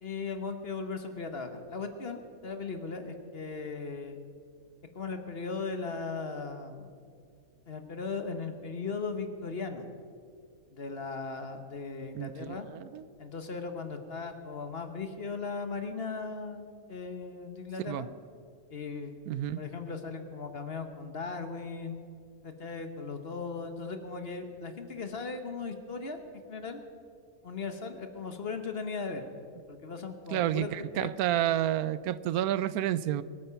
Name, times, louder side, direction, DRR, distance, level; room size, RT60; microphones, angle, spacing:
voice 1, 0.0-4.2 4.9-7.0 7.7-9.9 10.7-12.7 13.2-18.1 18.7-19.1 19.6-22.0 22.4-26.2 26.5-26.8 27.4-29.2 29.7-31.1, left 4 dB, 45° left, 7 dB, 1.3 m, -38 dB
voice 2, 12.1-13.0 17.9-18.1 19.3-19.6 30.3-33.2, right 12 dB, 85° right, 17 dB, 1.1 m, -30 dB
23.0 x 8.7 x 5.7 m, 2.3 s
omnidirectional pair, 1.5 m